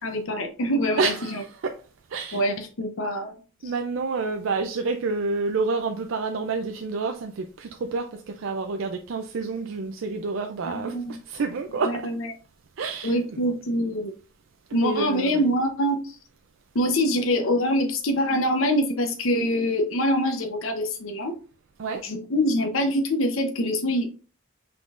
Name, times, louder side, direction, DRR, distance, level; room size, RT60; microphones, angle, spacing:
voice 1, 0.0-1.4 2.3-3.3 10.6-11.2 11.8-12.3 13.0-14.1 14.7-16.2 16.7-21.3 22.0-24.1, equal, 85° left, 0.8 m, -24 dB
voice 2, 1.0-1.8 2.1-2.5 3.6-12.1 12.8-13.4 14.7-15.5 21.8-22.0, right 4 dB, 75° right, 0.4 m, -29 dB
5.8 x 3.7 x 2.5 m
head